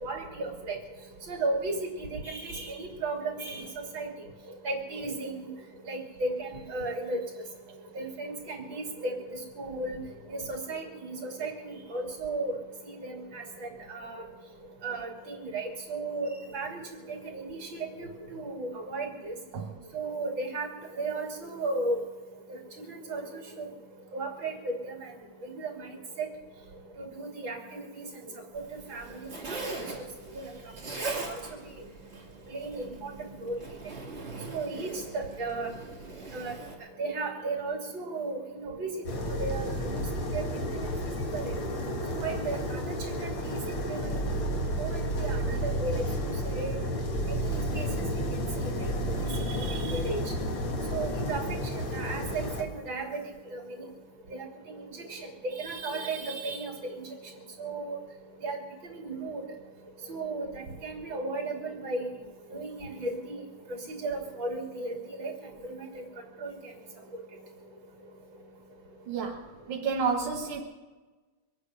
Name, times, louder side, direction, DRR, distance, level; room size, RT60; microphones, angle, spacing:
voice 1, 0.0-0.8 1.3-3.7 3.9-4.1 4.6-5.5 5.9-7.2 8.0-9.1 9.6-10.0 10.3-12.5 13.0-14.2 14.8-16.8 17.1-19.3 19.9-20.7 21.0-22.0 22.9-23.6 24.1-24.9 25.5-25.7 26.2-26.3 27.0-27.8 28.9-29.2 29.6-29.7 30.4-30.5 31.2-31.3 32.5-33.1 33.4-33.6 34.5-34.9 35.1-35.7 36.3-36.5 37.0-38.9 39.4-40.9 41.3-41.5 42.1-44.2 44.8-46.7 47.4-47.9 48.6-48.9 49.5-50.2 50.9-51.4 51.7-53.2 54.3-54.8 55.1-55.2 55.4-57.0 57.6-58.0 58.4-58.6 58.8-59.4 60.1-62.0 62.5-63.3 63.9-65.3 65.6-65.8 66.4-66.5, right 3 dB, 65° right, 1 dB, 3.4 m, -35 dB
Zipper (clothing), 28.5-36.7, right 3 dB, 30° right, 2.7 m, -41 dB
sound 1, 39.1-52.6, equal, 65° left, 2.4 m, -31 dB
voice 2, 69.1-70.6, right 5 dB, 90° right, 2 dB, 2.1 m, -30 dB
23.5 x 8.9 x 6.5 m, 1.3 s
omnidirectional pair, 2.3 m